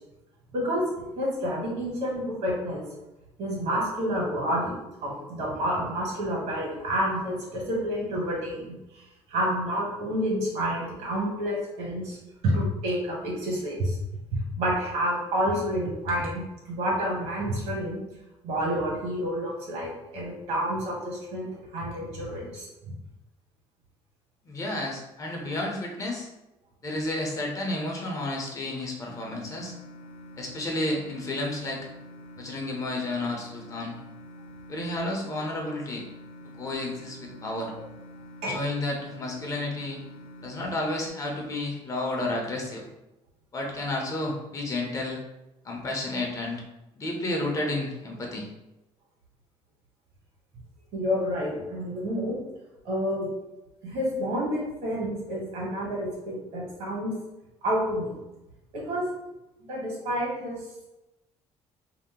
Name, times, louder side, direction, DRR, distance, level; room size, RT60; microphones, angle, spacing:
voice 1, 0.5-0.9 1.2-2.8 3.4-4.7 5.0-9.0 9.3-12.2 12.4-14.0 14.3-18.0 18.4-22.7 37.5-37.7 38.4-38.6 50.9-52.4 52.8-53.3 53.8-57.1 57.6-58.2 58.7-59.1 59.7-60.6, equal, 75° right, -3 dB, 1.4 m, -29 dB
voice 2, 24.4-26.3 26.8-29.7 30.4-31.9 32.4-34.0 34.7-36.0 36.6-37.7 38.5-40.0 40.4-42.8 43.5-45.2 45.6-46.6 46.9-48.5, left 2 dB, 30° left, -1 dB, 0.6 m, -31 dB
sound 1, 29.1-41.1, left 1 dB, 70° left, 0.6 m, -46 dB
2.8 x 2.0 x 3.6 m, 0.96 s
cardioid pair, 135°, 11 cm